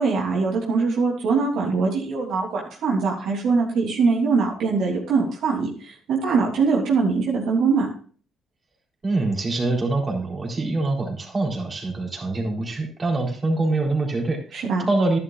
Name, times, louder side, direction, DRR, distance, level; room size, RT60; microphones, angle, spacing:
voice 1, 0.0-7.9 14.5-14.9, right 4 dB, 75° right, -2 dB, 3.0 m, -22 dB
voice 2, 9.0-15.2, right 2 dB, 35° right, 0 dB, 4.1 m, -24 dB
11.5 x 11.0 x 2.5 m, 0.42 s
supercardioid pair, 70°, 0 cm